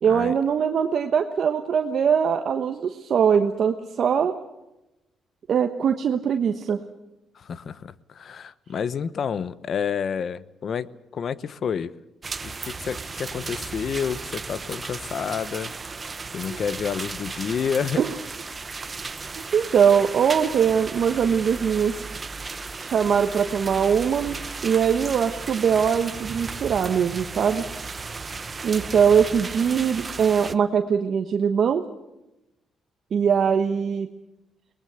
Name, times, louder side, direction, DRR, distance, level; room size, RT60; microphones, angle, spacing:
voice 1, 0.0-4.3 5.5-6.8 18.0-18.1 19.0-19.1 19.5-21.9 22.8-24.4 24.6-27.6 28.6-31.8 33.1-34.1, right 7 dB, 60° right, 5 dB, 1.2 m, -21 dB
voice 2, 7.3-11.9 12.4-15.7 16.3-18.0, left 7 dB, 55° left, 17 dB, 0.9 m, -29 dB
sound 1, 12.2-30.5, right 4 dB, 30° right, 0.9 m, -35 dB
22.5 x 19.5 x 8.1 m, 0.95 s
cardioid pair, 90°, 0 cm